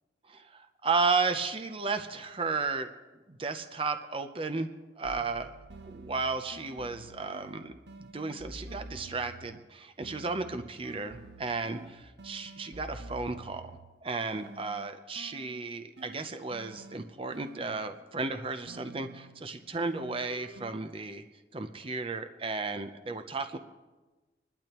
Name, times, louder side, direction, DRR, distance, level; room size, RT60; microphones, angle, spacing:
voice 1, 0.3-2.9 3.3-4.7 5.0-5.6 5.8-7.7 8.0-21.2 21.5-23.6, right 4 dB, 30° right, 8 dB, 0.6 m, -34 dB
sound 1, 5.0-9.7 10.0-14.0 14.3-18.1 18.7-20.7, right 2 dB, 70° right, 0.7 m, -49 dB
26.5 x 12.0 x 3.0 m, 1.2 s
head